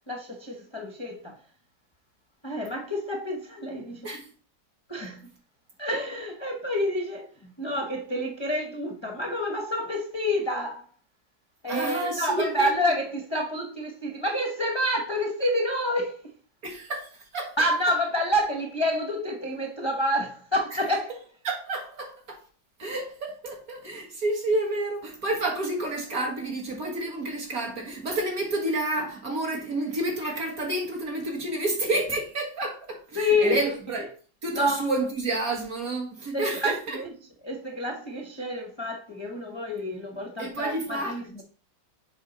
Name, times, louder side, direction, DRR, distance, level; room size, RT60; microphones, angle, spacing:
voice 1, 0.1-1.4 2.4-4.1 4.9-5.3 5.8-10.8 11.6-16.1 17.6-21.1 33.1-34.0 34.5-34.8 36.3-37.1 37.4-41.4, left 1 dB, 25° left, 0.5 m, -28 dB
voice 2, 11.7-12.9 16.6-17.6 21.4-22.4 22.8-34.1 34.4-37.0 40.4-41.1, right 2 dB, 50° right, 2.1 m, -30 dB
7.1 x 5.2 x 4.0 m
omnidirectional pair, 2.1 m